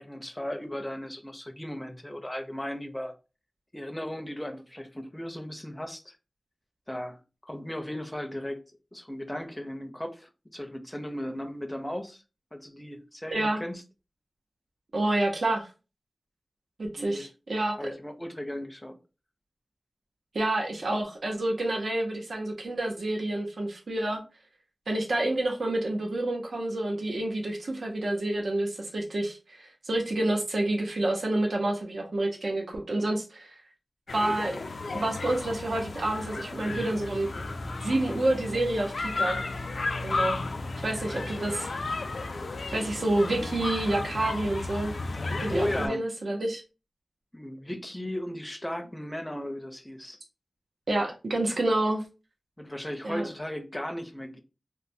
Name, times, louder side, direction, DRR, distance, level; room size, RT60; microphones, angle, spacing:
voice 1, 0.0-3.1 3.7-6.2 6.9-8.6 8.9-12.2 12.5-13.8 17.0-17.3 17.8-19.0 45.5-46.0 47.3-50.2 52.6-54.4, left 1 dB, 10° left, 0.5 m, -36 dB
voice 2, 13.3-13.6 14.9-15.7 16.8-17.9 20.3-24.2 24.9-33.5 34.1-34.6 34.9-37.3 37.8-39.4 40.0-40.4 40.8-41.7 42.7-44.9 45.4-46.6 50.9-52.0 53.0-53.3, right 1 dB, 85° right, 0.6 m, -28 dB
sound 1, 34.1-45.9, left 3 dB, 75° left, 0.3 m, -33 dB
3.1 x 2.1 x 2.6 m
wide cardioid pair, 85°, 0 cm